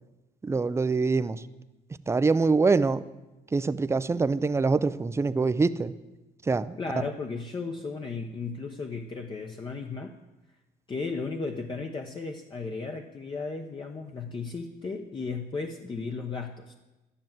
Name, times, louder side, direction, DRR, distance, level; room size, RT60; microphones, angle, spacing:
voice 1, 0.4-1.4 2.1-3.0 3.5-5.9 6.5-6.8, right 4 dB, 15° right, 14 dB, 0.5 m, -24 dB
voice 2, 6.8-10.1 10.9-16.7, left 4 dB, 30° left, 2 dB, 0.9 m, -35 dB
12.0 x 9.9 x 7.6 m, 1.1 s
cardioid pair, 110°, 17 cm